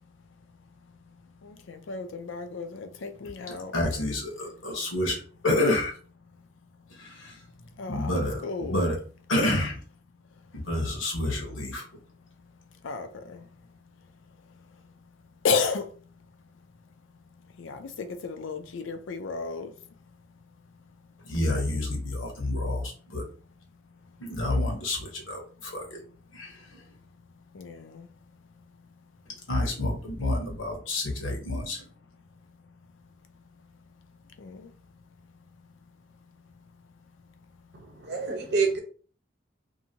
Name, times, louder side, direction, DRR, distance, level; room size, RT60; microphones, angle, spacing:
voice 1, 0.0-3.7 4.7-4.8 6.4-6.5 6.8-8.9 10.3-10.7 12.2-16.4 16.7-17.0 17.3-21.3 23.9-24.2 25.6-25.7 26.2-26.4 26.8-26.9 27.5-29.1 32.4-37.9, left 5 dB, 70° left, 0.5 m, -37 dB
voice 2, 3.7-5.9 6.9-7.4 7.9-9.0 9.3-9.8 10.5-11.8 21.2-23.2 24.2-26.0 26.3-26.8 29.5-31.9, left 1 dB, 90° left, 1.0 m, -29 dB
voice 3, 37.7-38.8, right 4 dB, 60° right, 0.8 m, -27 dB
2.7 x 2.6 x 2.7 m
head